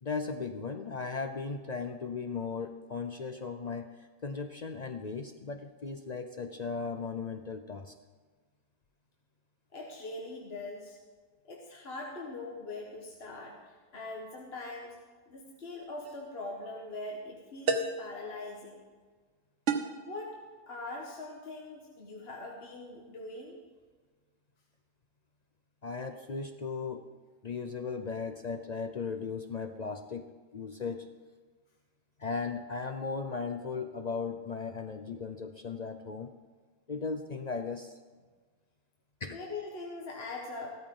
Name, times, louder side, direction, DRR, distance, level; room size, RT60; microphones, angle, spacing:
voice 1, 0.0-7.9 25.8-27.1 27.4-31.1 32.2-36.3 36.9-38.0 39.2-39.4, left 4 dB, 70° left, 7 dB, 0.4 m, -37 dB
voice 2, 9.7-11.0 11.4-13.6 13.9-15.0 15.3-18.8 20.1-20.4 20.7-23.6 39.3-40.7, left 2 dB, 40° left, -1 dB, 1.7 m, -42 dB
sound 1, 16.0-16.3 17.7-18.1 19.7-20.0, right 4 dB, 55° right, 1.2 m, -30 dB
15.5 x 13.5 x 3.8 m, 1.4 s
omnidirectional pair, 1.6 m